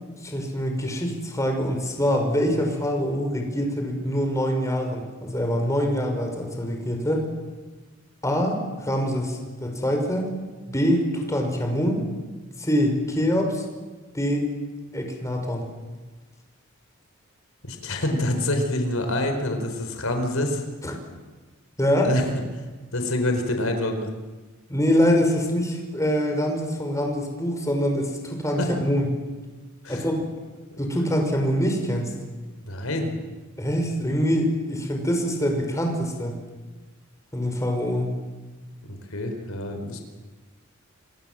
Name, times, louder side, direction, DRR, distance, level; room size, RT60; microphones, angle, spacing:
voice 1, 0.2-7.3 8.2-10.3 10.7-12.0 12.6-13.6 14.1-14.5 14.9-15.6 20.8-21.0 21.8-22.1 24.7-29.1 29.9-30.2 30.8-32.1 33.6-36.3 37.3-38.2, equal, 15° left, 3 dB, 5.6 m, -24 dB
voice 2, 17.6-20.6 22.0-22.3 22.9-24.1 28.6-28.7 29.8-30.0 30.7-30.8 32.6-33.1 38.9-40.0, left 1 dB, 80° left, 5 dB, 4.6 m, -26 dB
27.5 x 26.0 x 7.7 m, 1.3 s
head